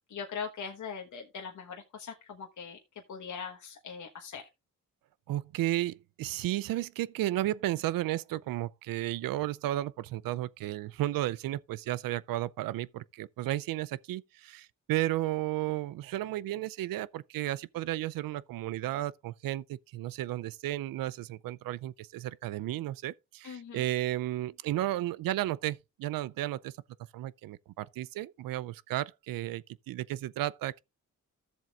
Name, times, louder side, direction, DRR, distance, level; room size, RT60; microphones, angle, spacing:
voice 1, 0.1-2.8 3.1-4.5 23.4-23.8, left 6 dB, 60° left, 1.3 m, -41 dB
voice 2, 5.3-26.7 27.1-30.8, right 15 dB, 85° right, 0.5 m, -33 dB
13.5 x 7.4 x 2.4 m
cardioid pair, 65°, 33 cm